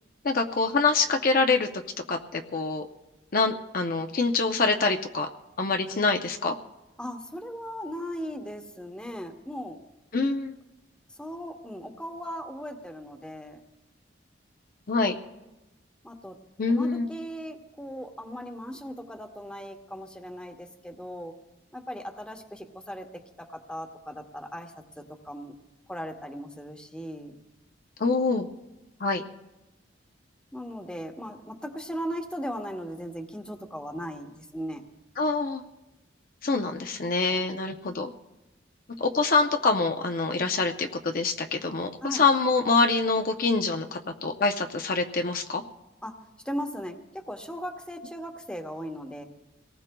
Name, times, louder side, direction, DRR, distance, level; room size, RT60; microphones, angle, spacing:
voice 1, 0.2-1.7 2.1-2.9 3.3-5.3 5.6-6.5 10.1-10.5 14.9-15.1 16.6-17.1 28.0-28.5 29.0-29.2 35.2-35.6 36.4-38.1 39.0-45.6, left 3 dB, 45° left, 5 dB, 0.6 m, -25 dB
voice 2, 7.0-9.8 11.2-13.6 16.0-16.4 16.7-21.4 21.7-25.6 25.9-27.4 30.5-34.8 42.0-42.2 46.0-46.2 46.4-49.2, equal, 5° left, 4 dB, 0.9 m, -38 dB
25.5 x 18.5 x 2.3 m, 1.0 s
head